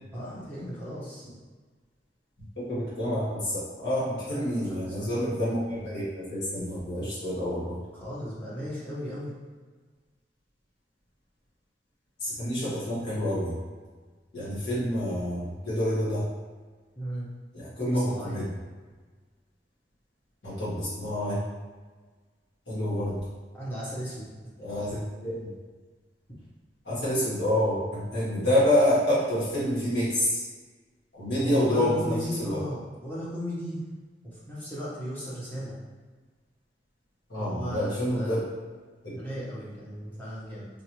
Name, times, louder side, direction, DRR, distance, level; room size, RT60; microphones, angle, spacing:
voice 1, 0.1-1.3 4.3-5.0 7.9-9.3 17.0-17.3 17.8-18.4 23.5-24.3 31.4-33.8 34.5-35.8 37.4-38.4 39.1-40.7, equal, 10° left, -9 dB, 1.1 m, -36 dB
voice 2, 2.6-7.8 12.2-13.5 14.3-16.2 17.5-18.5 20.4-21.4 22.7-23.2 24.6-25.5 26.8-30.4 31.1-32.6 37.3-38.4 39.0-39.2, left 1 dB, 80° left, -10 dB, 1.5 m, -28 dB
3.8 x 2.8 x 3.0 m, 1.4 s
head